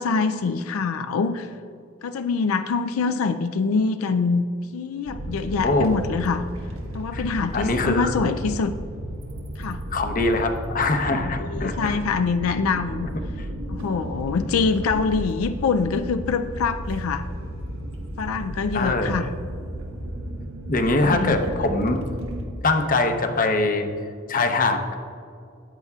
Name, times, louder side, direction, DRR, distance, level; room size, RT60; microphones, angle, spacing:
voice 1, 0.0-1.5 2.0-4.4 4.7-6.5 6.9-8.8 9.6-9.8 11.1-13.1 13.7-17.2 18.2-19.3 21.0-21.4, left 4 dB, 90° left, 9 dB, 0.4 m, -25 dB
sound 1, 5.1-22.5, equal, 85° right, 1.2 m, -33 dB
voice 2, 5.6-5.9 7.1-7.2 7.5-8.1 9.9-11.9 18.7-19.2 20.7-22.0 22.6-23.9 24.3-25.0, left 2 dB, 40° left, 6 dB, 0.8 m, -22 dB
13.5 x 9.3 x 2.4 m, 2.4 s
head